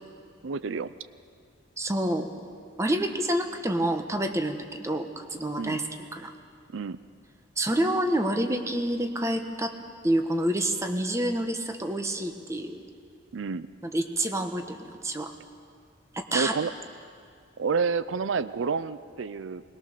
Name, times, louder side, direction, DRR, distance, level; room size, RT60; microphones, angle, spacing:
voice 1, 0.4-0.9 5.6-5.8 6.7-7.0 13.3-13.7 16.3-16.7 17.6-19.6, right 5 dB, 85° right, 15 dB, 0.5 m, -29 dB
voice 2, 1.8-2.3 2.8-5.8 6.1-6.3 7.6-9.7 10.0-12.8 13.8-15.3 16.1-16.5, right 1 dB, 15° right, 6 dB, 1.1 m, -28 dB
21.5 x 20.0 x 6.6 m, 2.2 s
head